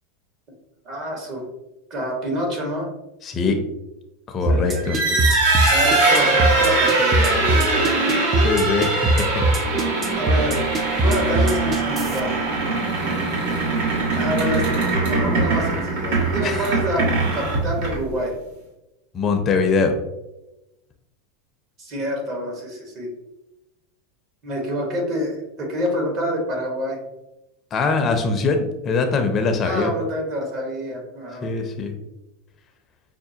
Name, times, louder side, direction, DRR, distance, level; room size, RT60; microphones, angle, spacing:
voice 1, 0.8-1.5 1.9-2.9 4.5-5.2 5.7-8.0 10.1-10.7 11.0-12.3 14.1-14.7 15.0-17.0 17.3-18.3 21.8-23.1 24.4-27.0 29.6-31.5, equal, 45° right, 0 dB, 1.3 m, -27 dB
voice 2, 3.2-3.6 4.3-5.0 8.4-9.0 16.4-16.7 19.1-20.0 27.7-29.9 31.4-31.9, left 4 dB, 35° left, 5 dB, 0.5 m, -22 dB
sound 1, 4.5-12.2, right 1 dB, 25° right, 0.5 m, -21 dB
sound 2, 4.8-18.2, right 3 dB, 70° right, 1.4 m, -21 dB
5.7 x 2.1 x 2.8 m, 0.94 s
hypercardioid pair, 105°, 0 cm